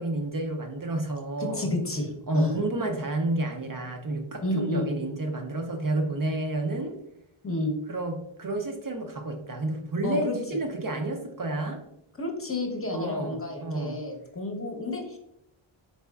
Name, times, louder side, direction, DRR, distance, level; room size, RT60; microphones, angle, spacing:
voice 1, 0.0-1.7 2.3-7.0 7.9-11.8 12.9-14.0, right 2 dB, 45° right, 3 dB, 0.5 m, -30 dB
voice 2, 1.4-2.6 4.4-4.9 7.4-7.7 10.0-10.4 12.2-15.2, left 2 dB, 25° left, 1 dB, 0.8 m, -30 dB
4.2 x 4.0 x 2.3 m, 0.79 s
wide cardioid pair, 140°, 49 cm